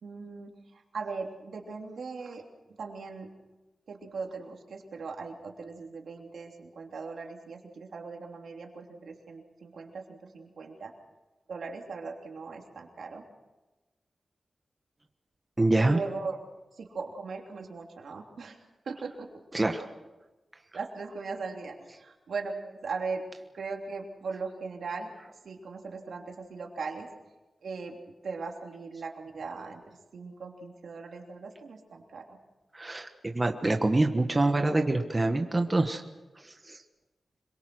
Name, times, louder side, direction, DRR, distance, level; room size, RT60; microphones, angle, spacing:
voice 1, 0.0-2.4 2.7-3.3 3.9-10.9 11.5-13.2 15.8-16.4 16.7-19.3 20.7-25.1 25.4-27.1 27.6-32.4, right 4 dB, 80° right, 2 dB, 3.2 m, -39 dB
voice 2, 15.6-16.0 19.5-19.9 32.7-36.0 36.4-36.8, right 2 dB, 20° right, 4 dB, 1.3 m, -26 dB
26.0 x 23.0 x 6.3 m, 1.1 s
wide cardioid pair, 175°, 0 cm